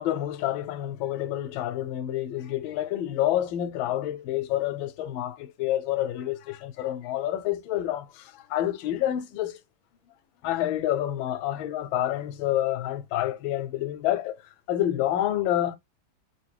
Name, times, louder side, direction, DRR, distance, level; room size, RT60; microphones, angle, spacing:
voice 1, 0.0-9.6 10.4-14.4 14.7-15.8, left 12 dB, 90° left, 1.4 m, -28 dB
3.5 x 2.7 x 3.3 m
omnidirectional pair, 2.1 m